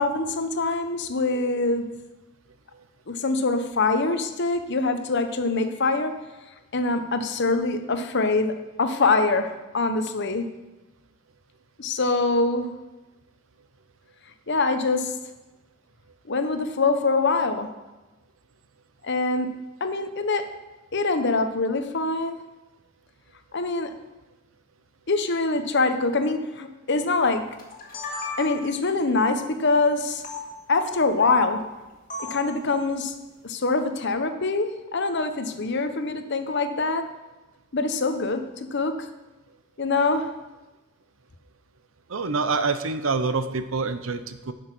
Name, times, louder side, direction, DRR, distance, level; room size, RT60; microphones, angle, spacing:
voice 1, 0.0-2.0 3.1-6.2 6.7-10.5 11.8-12.8 14.5-15.2 16.3-17.7 19.0-20.5 20.9-22.5 23.5-24.0 25.1-27.6 28.4-30.2 30.7-31.7 32.2-33.2 33.4-37.1 37.7-39.1 39.8-40.4, left 3 dB, 55° left, 8 dB, 0.9 m, -24 dB
sound 1, 27.6-28.8 30.2-30.4 32.1-32.5, left 3 dB, 40° left, 1.8 m, -34 dB
voice 2, 42.1-44.5, right 4 dB, 80° right, 10 dB, 0.8 m, -26 dB
10.5 x 6.4 x 6.1 m, 1.1 s
head